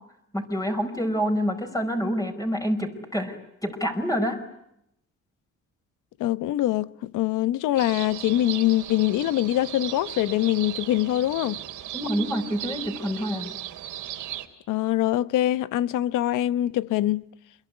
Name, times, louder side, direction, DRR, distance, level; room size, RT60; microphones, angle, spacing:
voice 1, 0.3-3.4 3.6-4.4 11.9-13.5, equal, 10° left, 5.0 m, -27 dB
voice 2, 6.2-11.6 14.7-17.2, left 14 dB, 90° left, 1.1 m, -24 dB
sound 1, 7.8-14.5, right 13 dB, 80° right, 3.1 m, -37 dB
28.0 x 22.5 x 9.6 m
cardioid pair, 90°, 30 cm